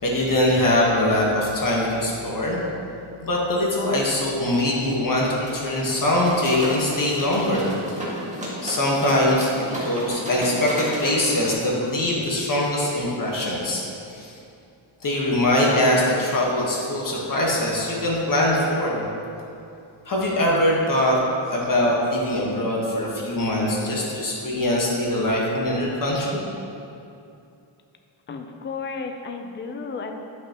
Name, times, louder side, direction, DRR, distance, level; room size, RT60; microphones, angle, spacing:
voice 1, 0.0-2.6 3.2-7.7 8.6-13.8 14.1-14.3 15.0-19.0 20.0-21.2 21.5-26.4, left 1 dB, 40° left, -3 dB, 1.5 m, -22 dB
sound 1, 5.4-11.5, equal, 15° right, 1.7 m, -33 dB
voice 2, 28.3-30.1, left 4 dB, 25° left, 5 dB, 0.5 m, -33 dB
11.0 x 5.7 x 3.0 m, 2.6 s
wide cardioid pair, 125°, 48 cm